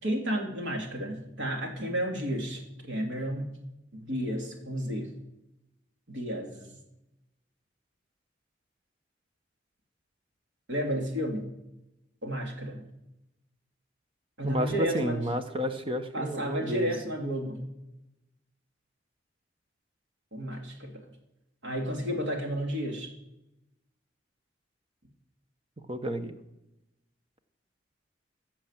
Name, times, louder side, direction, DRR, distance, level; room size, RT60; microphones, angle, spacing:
voice 1, 0.0-3.5 3.9-5.1 6.1-6.8 10.7-11.5 12.2-12.9 14.4-15.3 16.1-17.6 20.3-21.1 21.6-23.1, equal, 90° right, 3 dB, 2.8 m, -32 dB
voice 2, 14.4-16.9 25.9-26.3, equal, 30° right, 8 dB, 1.1 m, -31 dB
15.0 x 7.3 x 7.4 m, 0.90 s
head